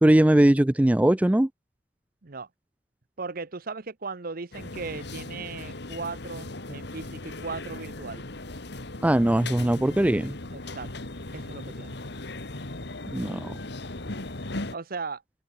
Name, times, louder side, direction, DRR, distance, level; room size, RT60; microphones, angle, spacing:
voice 1, 0.0-1.5 9.0-10.3 13.1-13.5, right 1 dB, 10° right, 0.3 m, -20 dB
voice 2, 3.2-8.3 10.5-12.0 14.7-15.2, right 4 dB, 50° right, 0.9 m, -37 dB
sound 1, 4.5-14.8, left 2 dB, 65° left, 2.2 m, -38 dB
head